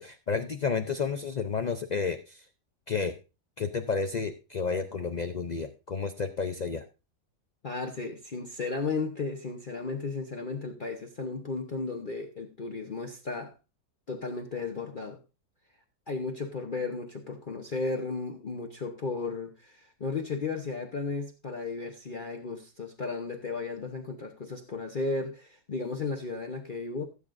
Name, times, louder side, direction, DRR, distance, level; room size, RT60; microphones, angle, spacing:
voice 1, 0.0-2.4 2.9-3.2 3.6-6.8, left 5 dB, 75° left, 0.4 m, -31 dB
voice 2, 7.6-13.5 14.1-15.2 16.1-27.0, left 3 dB, 40° left, 0.9 m, -34 dB
16.0 x 8.4 x 2.6 m
omnidirectional pair, 1.7 m